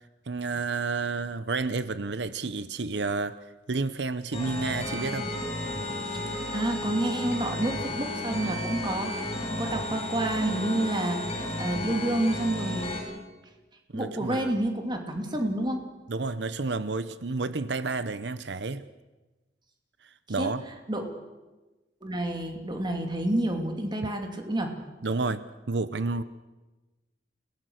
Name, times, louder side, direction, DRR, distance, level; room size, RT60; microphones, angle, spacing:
voice 1, 0.3-3.4 3.7-5.3 13.9-14.5 16.1-18.8 20.3-20.6 25.0-26.2, right 3 dB, 75° right, 14 dB, 0.8 m, -30 dB
sound 1, 4.3-13.0, left 1 dB, 35° left, 7.8 m, -33 dB
voice 2, 6.1-12.9 13.9-15.8 20.4-20.5 20.9-21.1 22.0-24.7, right 1 dB, 25° right, 3 dB, 2.6 m, -29 dB
29.0 x 18.0 x 6.5 m, 1.1 s
head